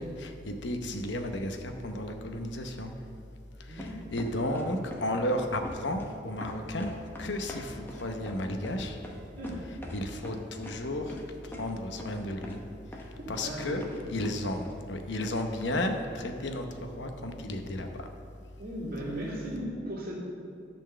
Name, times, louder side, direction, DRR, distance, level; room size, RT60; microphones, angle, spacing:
voice 1, 0.0-2.9 3.7-6.9 7.2-9.0 9.9-11.2 11.4-12.6 13.3-13.8 14.1-18.0, left 1 dB, 70° left, 5 dB, 0.9 m, -33 dB
voice 2, 3.7-4.5 4.8-4.9 9.3-9.7 13.3-14.1 17.0-17.5 18.6-20.2, equal, 55° right, -4 dB, 2.3 m, -38 dB
sound 1, 3.8-5.0 5.3-6.1 6.4-10.0 10.2-10.8 11.1-11.2 11.5-11.6 12.0-12.2 12.4-12.6 12.9-13.5 13.8-14.4 14.6-14.7, left 1 dB, 10° left, 1.0 m, -42 dB
11.0 x 4.5 x 6.7 m, 2.4 s
head